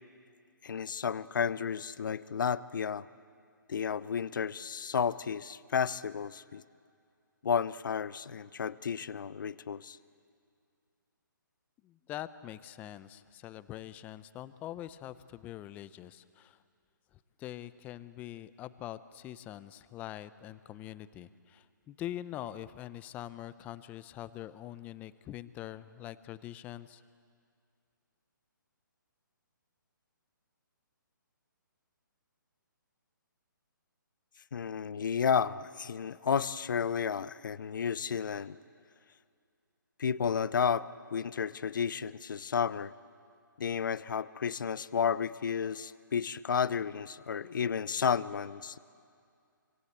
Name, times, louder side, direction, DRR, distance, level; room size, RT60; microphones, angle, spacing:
voice 1, 0.6-3.1 3.7-6.6 7.4-10.0 34.5-38.6 40.0-42.9 43.6-48.8, left 7 dB, 70° left, 17 dB, 0.8 m, -32 dB
voice 2, 11.8-16.6 17.4-27.0, left 13 dB, 15° left, 15 dB, 0.6 m, -44 dB
26.0 x 25.5 x 8.1 m, 2.3 s
hypercardioid pair, 155°, 11 cm